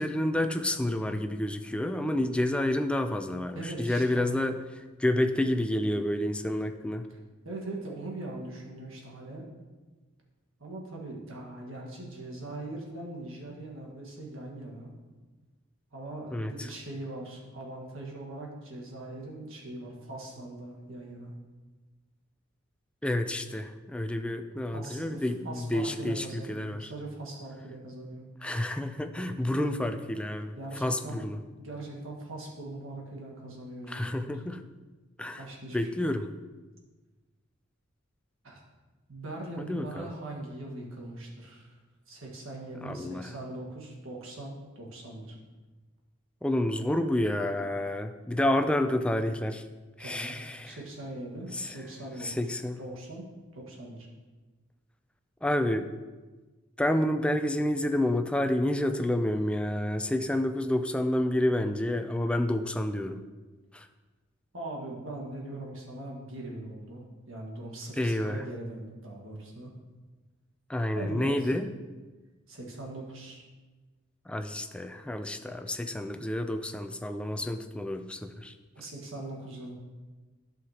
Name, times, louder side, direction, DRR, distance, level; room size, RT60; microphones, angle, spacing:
voice 1, 0.0-4.6 5.0-7.1 16.3-16.7 23.0-26.9 28.4-31.4 33.9-34.6 35.2-35.4 35.7-36.3 39.6-40.1 42.8-43.3 46.4-49.6 50.0-50.8 51.5-51.8 52.2-52.8 55.4-55.9 56.8-63.2 63.7-63.9 68.0-68.4 70.7-71.7 74.3-78.5, left 1 dB, 5° left, 7 dB, 0.3 m, -29 dB
voice 2, 3.5-4.4 7.1-7.2 7.5-9.5 10.6-14.9 15.9-21.4 24.7-28.3 30.6-34.2 35.4-36.0 38.4-38.6 39.1-41.8 42.1-45.4 50.0-50.4 50.6-52.3 52.8-54.1 64.5-69.7 70.9-71.6 72.5-73.4 78.7-79.7, right 2 dB, 80° right, -2 dB, 1.6 m, -41 dB
12.0 x 5.6 x 2.9 m, 1.3 s
head